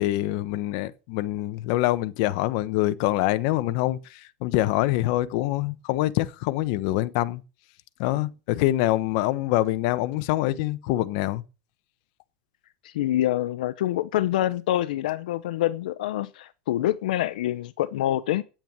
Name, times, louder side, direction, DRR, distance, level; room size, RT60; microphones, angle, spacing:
voice 1, 0.0-7.4 8.0-11.4, left 16 dB, 50° left, 1.0 m, -25 dB
voice 2, 12.9-18.4, left 13 dB, 80° left, 0.8 m, -26 dB
9.1 x 8.9 x 8.1 m
supercardioid pair, 160°, 4 cm